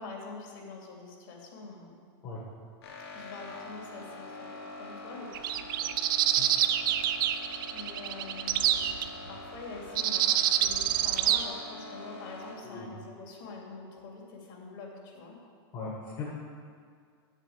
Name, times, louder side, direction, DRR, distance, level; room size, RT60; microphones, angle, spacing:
voice 1, 0.0-1.9 3.1-4.5 4.8-5.9 7.7-9.0 9.3-15.4, left 3 dB, 50° left, -1 dB, 2.8 m, -45 dB
sound 1, 2.8-12.6, left 2 dB, 70° left, 2.3 m, -45 dB
sound 2, 5.4-9.1 10.0-11.4, right 11 dB, 55° right, 0.6 m, -26 dB
voice 2, 15.7-16.3, left 4 dB, 30° left, -5 dB, 1.6 m, -39 dB
8.2 x 7.5 x 8.7 m, 2.1 s
supercardioid pair, 170°, 14 cm